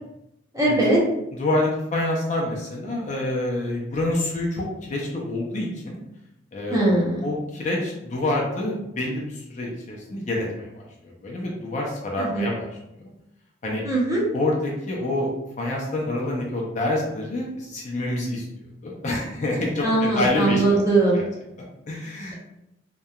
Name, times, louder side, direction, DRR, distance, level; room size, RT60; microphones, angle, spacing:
voice 1, 0.5-1.0 6.7-7.3 12.2-12.4 13.8-14.2 19.8-21.2, right 2 dB, 15° right, -5 dB, 0.6 m, -20 dB
voice 2, 1.4-6.0 6.5-6.8 7.2-10.7 11.0-12.7 13.0-13.1 13.6-13.8 14.3-15.3 15.6-18.4 18.8-20.8 21.1-21.2 21.6-22.3, left 1 dB, 40° left, -2 dB, 0.4 m, -27 dB
2.8 x 2.2 x 2.3 m, 0.85 s
head